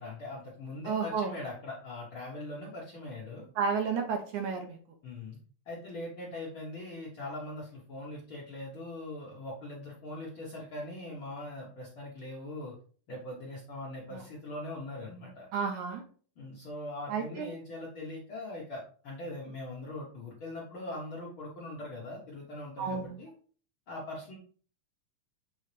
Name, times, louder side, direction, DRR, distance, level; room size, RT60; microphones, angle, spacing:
voice 1, 0.0-3.4 5.0-5.4 5.6-12.7 13.1-15.5 16.4-23.3 23.9-24.4, left 2 dB, 60° left, -4 dB, 1.3 m, -41 dB
voice 2, 0.8-1.3 3.6-4.8 14.1-14.2 15.5-16.0 17.1-17.5 22.8-23.1, right 5 dB, 70° right, 4 dB, 2.0 m, -31 dB
7.6 x 3.9 x 3.3 m, 0.43 s
omnidirectional pair, 3.9 m